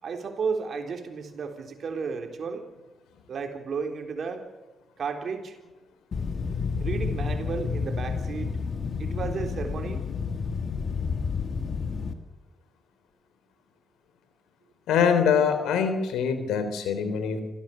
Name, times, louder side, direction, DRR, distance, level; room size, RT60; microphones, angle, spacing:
voice 1, 0.0-2.7 3.3-4.5 5.0-5.6 6.8-8.5 9.0-10.1, right 5 dB, 65° right, 5 dB, 3.8 m, -33 dB
sound 1, 6.1-12.1, left 5 dB, 60° left, 2.3 m, -30 dB
voice 2, 14.9-17.4, left 7 dB, 85° left, 8 dB, 3.8 m, -24 dB
27.5 x 16.0 x 7.0 m, 1.1 s
hypercardioid pair, 45°, 0 cm